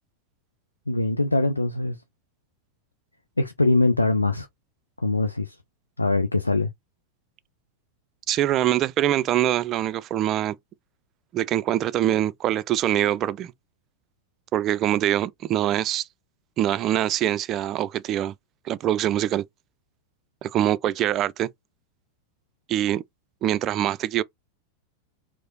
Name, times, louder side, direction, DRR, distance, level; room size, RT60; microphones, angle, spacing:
voice 1, 0.9-2.0 3.4-4.5 5.0-5.6 6.0-6.7, left 2 dB, 80° left, 0.5 m, -22 dB
voice 2, 8.3-10.6 11.3-13.5 14.5-16.1 16.6-18.3 18.7-19.5 20.4-21.5 22.7-23.0 23.4-24.2, right 12 dB, 35° right, 0.3 m, -24 dB
4.7 x 2.0 x 3.9 m
figure-of-eight pair, 90°, 0 cm